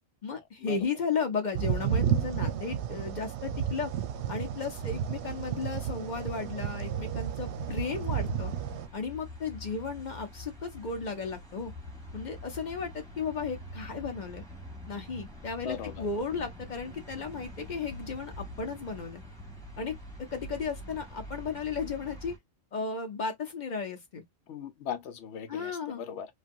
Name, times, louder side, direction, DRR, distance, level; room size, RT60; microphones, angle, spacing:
voice 1, 0.2-3.9 4.3-8.5 8.9-11.7 12.1-14.4 14.9-19.2 19.8-20.0 20.3-22.4 22.7-24.2 25.5-26.0, left 5 dB, 45° left, 0.7 m, -34 dB
sound 1, 1.5-8.9, right 9 dB, 65° right, 0.8 m, -32 dB
sound 2, 3.9-22.4, left 1 dB, 5° left, 1.1 m, -46 dB
voice 2, 15.6-16.1 24.5-26.3, left 8 dB, 70° left, 0.9 m, -38 dB
3.1 x 2.2 x 2.5 m
omnidirectional pair, 1.3 m